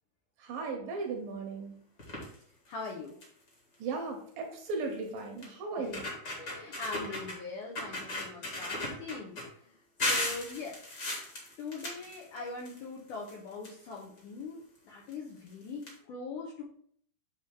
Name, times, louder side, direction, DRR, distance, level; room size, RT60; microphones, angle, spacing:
voice 1, 0.4-1.7 3.8-6.1, right 3 dB, 70° right, 2 dB, 2.3 m, -36 dB
sound 1, 2.0-2.3 2.8-2.9 3.2-3.5 4.7-4.8 5.4-5.5 5.8-7.4 7.7-9.4 10.0-12.8 13.1-14.2 15.1-15.2 15.5-15.6 15.8-15.9, left 1 dB, 40° left, 1.6 m, -36 dB
voice 2, 2.7-3.2 5.8-9.8 10.1-10.8 11.6-16.6, left 4 dB, 75° left, -3 dB, 1.9 m, -42 dB
8.5 x 3.1 x 4.5 m, 0.62 s
omnidirectional pair, 4.6 m